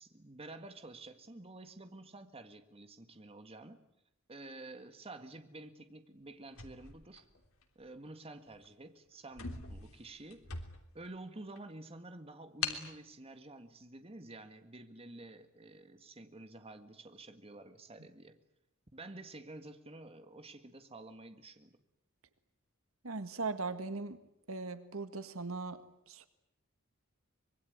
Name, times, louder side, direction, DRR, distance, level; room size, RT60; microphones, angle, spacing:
voice 1, 0.0-3.9 4.3-7.3 7.8-10.6 10.9-18.4 18.9-21.8, right 2 dB, 30° right, 8 dB, 1.9 m, -50 dB
sound 1, 6.5-7.8 8.5-8.7 9.0-9.1 9.3-11.1 11.6-11.7 12.6-12.9, left 6 dB, 85° left, 3.4 m, -42 dB
voice 2, 23.0-24.2 24.5-26.3, right 3 dB, 80° right, 11 dB, 1.7 m, -39 dB
25.0 x 22.0 x 9.5 m, 0.79 s
head